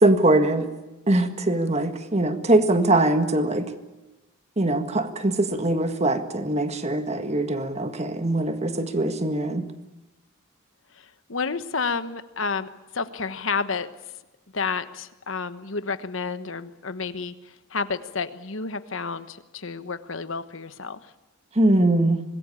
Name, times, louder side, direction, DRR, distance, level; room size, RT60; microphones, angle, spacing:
voice 1, 0.0-0.7 1.1-3.7 4.6-9.6 21.6-22.2, right 2 dB, 30° right, 8 dB, 1.7 m, -22 dB
voice 2, 11.3-12.7 12.9-13.9 14.5-17.3 17.7-21.0, left 4 dB, 65° left, 12 dB, 1.2 m, -30 dB
25.0 x 21.0 x 8.6 m, 1.1 s
head